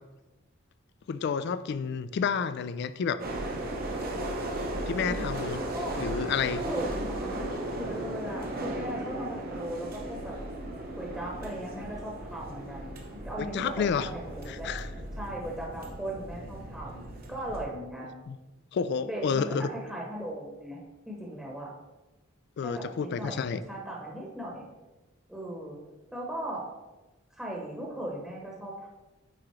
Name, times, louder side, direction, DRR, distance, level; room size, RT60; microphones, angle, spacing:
voice 1, 1.1-3.2 4.9-5.6 6.0-6.6 13.4-14.1 14.5-14.9 18.3-18.4 18.7-19.7 22.6-23.6, left 6 dB, 55° left, 14 dB, 0.3 m, -30 dB
sound 1, 3.2-17.7, right 1 dB, 45° right, 0.8 m, -36 dB
voice 2, 6.5-10.4 11.0-14.7 15.2-17.0 17.3-18.2 19.0-20.8 21.1-21.7 22.6-24.7 25.3-25.8 26.1-26.6 27.4-28.9, right 1 dB, 5° right, -3 dB, 1.0 m, -38 dB
9.2 x 3.7 x 3.1 m, 1.1 s
head